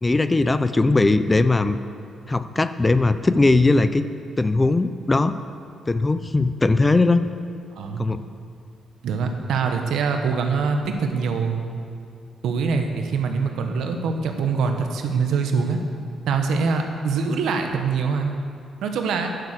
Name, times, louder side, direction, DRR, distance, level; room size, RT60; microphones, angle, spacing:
voice 1, 0.0-1.8 2.3-4.1 4.4-5.4 5.9-7.3 8.0-8.2, left 2 dB, 20° left, 12 dB, 0.5 m, -19 dB
voice 2, 7.7-8.1 9.0-11.6 12.4-15.8 16.3-18.3 18.8-19.3, right 5 dB, 80° right, 4 dB, 1.3 m, -24 dB
10.5 x 10.5 x 6.7 m, 2.3 s
cardioid pair, 90°, 0 cm